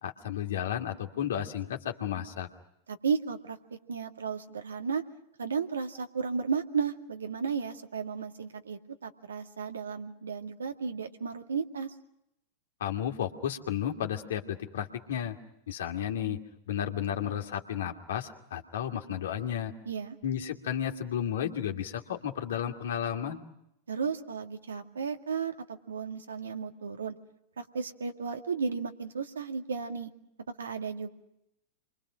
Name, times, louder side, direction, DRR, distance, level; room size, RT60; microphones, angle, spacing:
voice 1, 0.0-2.5 12.8-15.4 15.7-16.4 16.7-19.7 20.2-23.4, left 9 dB, 70° left, 4 dB, 2.4 m, -33 dB
voice 2, 2.9-3.6 3.9-5.0 5.4-11.9 19.9-20.2 23.9-27.1 27.6-30.1 30.6-31.1, right 6 dB, 80° right, 5 dB, 2.2 m, -34 dB
28.5 x 24.0 x 6.4 m, 0.82 s
hypercardioid pair, 95°, 0 cm